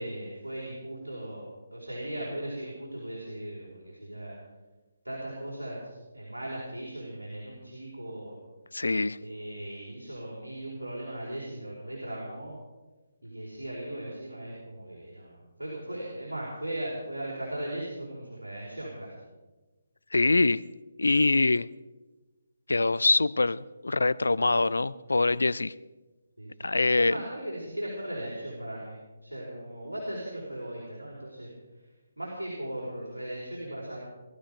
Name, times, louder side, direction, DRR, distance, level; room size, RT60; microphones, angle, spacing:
voice 1, 0.0-4.3 5.0-8.3 9.2-12.5 13.2-19.2 25.0-25.2 26.4-26.7 27.0-28.9 29.2-31.5 32.2-34.0, right 1 dB, 80° right, -4 dB, 4.9 m, -38 dB
voice 2, 8.7-9.2 20.1-20.6 21.0-21.7 22.7-25.7 26.6-27.2, left 3 dB, 70° left, 19 dB, 0.5 m, -24 dB
19.5 x 12.5 x 5.2 m, 1.2 s
figure-of-eight pair, 145°, 0 cm